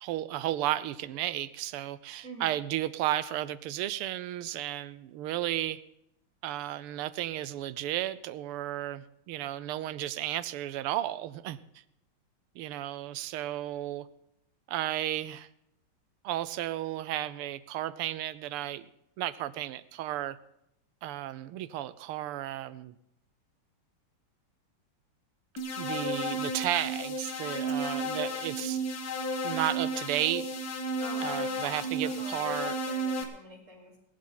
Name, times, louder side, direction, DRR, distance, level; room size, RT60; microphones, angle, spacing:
voice 1, 0.0-5.8 6.4-11.6 12.5-14.1 14.7-15.5 16.2-18.9 19.2-20.4 21.0-22.9 25.8-28.8 29.4-30.6 31.2-32.8, right 13 dB, 85° right, 16 dB, 1.6 m, -33 dB
voice 2, 2.2-2.6 31.0-34.0, right 2 dB, 40° right, -8 dB, 3.8 m, -47 dB
sound 1, 25.6-33.2, right 1 dB, 45° left, 1.9 m, -33 dB
20.0 x 11.5 x 3.9 m, 0.79 s
omnidirectional pair, 2.4 m